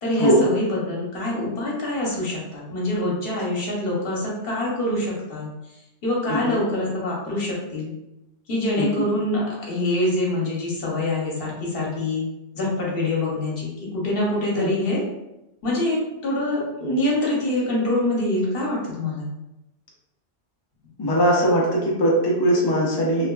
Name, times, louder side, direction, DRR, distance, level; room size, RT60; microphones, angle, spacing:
voice 1, 0.0-5.5 6.0-7.9 8.5-12.2 12.5-15.0 15.6-16.0 16.2-19.3, left 1 dB, 60° left, -4 dB, 1.0 m, -25 dB
voice 2, 21.0-23.3, right 1 dB, 40° left, -3 dB, 0.3 m, -20 dB
2.9 x 2.2 x 2.3 m, 0.93 s
omnidirectional pair, 1.2 m